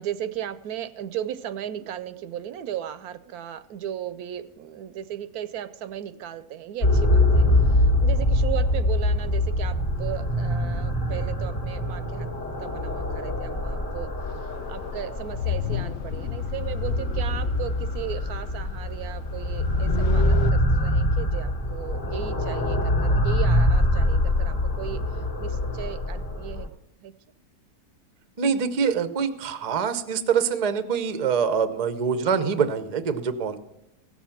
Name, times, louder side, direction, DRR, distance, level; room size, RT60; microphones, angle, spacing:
voice 1, 0.0-12.3 12.6-14.1 14.7-26.7 27.0-27.1 32.3-32.5, right 11 dB, 75° right, 14 dB, 1.0 m, -36 dB
sound 1, 6.8-26.7, left 1 dB, 55° left, 1.6 m, -24 dB
sound 2, 14.2-20.5, left 10 dB, 75° left, 0.6 m, -33 dB
voice 2, 28.4-33.6, right 6 dB, 40° right, 12 dB, 0.5 m, -25 dB
16.0 x 7.2 x 5.8 m, 0.87 s
omnidirectional pair, 1.7 m